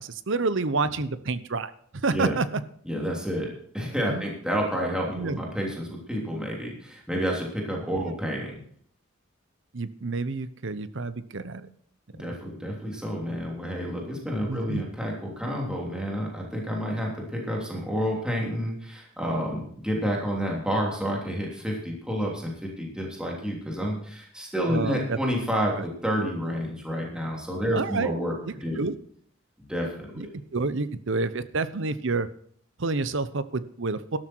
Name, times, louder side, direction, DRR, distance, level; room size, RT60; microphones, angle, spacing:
voice 1, 0.0-2.6 4.1-4.2 5.2-5.4 8.0-8.1 9.7-11.7 12.2-12.4 14.5-14.8 24.7-25.2 25.8-25.9 27.7-28.1 28.5-28.9 30.2-30.3 30.5-32.3 32.8-34.2, right 3 dB, 65° right, 14 dB, 0.8 m, -29 dB
voice 2, 2.9-8.6 12.1-28.8 29.6-30.3, equal, 5° right, -2 dB, 3.3 m, -29 dB
13.0 x 12.5 x 4.6 m, 0.62 s
head